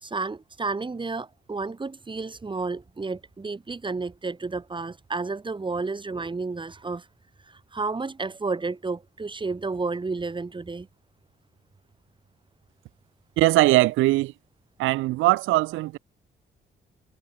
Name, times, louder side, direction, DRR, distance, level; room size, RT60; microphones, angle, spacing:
voice 1, 0.0-7.1 7.5-10.9, right 3 dB, 25° right, 3.0 m, -31 dB
voice 2, 13.4-14.3 14.8-16.0, right 18 dB, 85° right, 0.4 m, -20 dB
cardioid pair, 90°, 20 cm